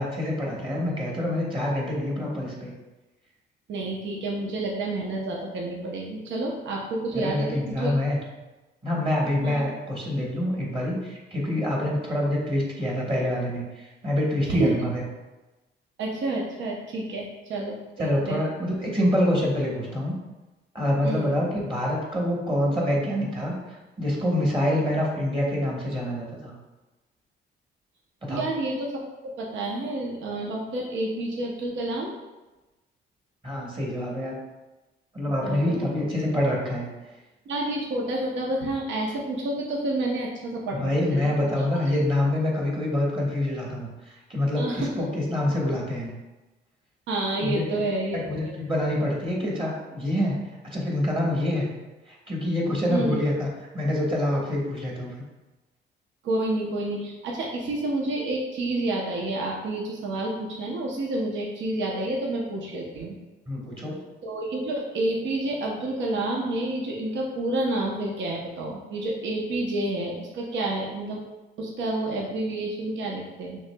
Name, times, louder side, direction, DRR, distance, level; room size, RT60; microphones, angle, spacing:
voice 1, 0.0-2.7 7.1-8.2 8.8-15.0 18.0-20.1 20.7-26.5 28.2-28.5 33.4-34.4 35.1-36.9 40.7-46.1 47.4-47.6 48.1-51.7 52.1-53.5 53.7-55.1 63.5-64.0, left 1 dB, 25° right, -3 dB, 1.3 m, -26 dB
voice 2, 3.7-7.9 9.4-9.6 14.5-14.8 16.0-18.4 21.0-21.3 28.3-32.1 35.3-35.9 37.5-41.3 44.6-45.1 47.1-48.5 52.9-53.2 56.2-63.2 64.2-71.2 71.6-73.6, right 2 dB, 70° right, -1 dB, 0.8 m, -29 dB
6.1 x 2.9 x 2.2 m, 1.1 s
cardioid pair, 90°, 20 cm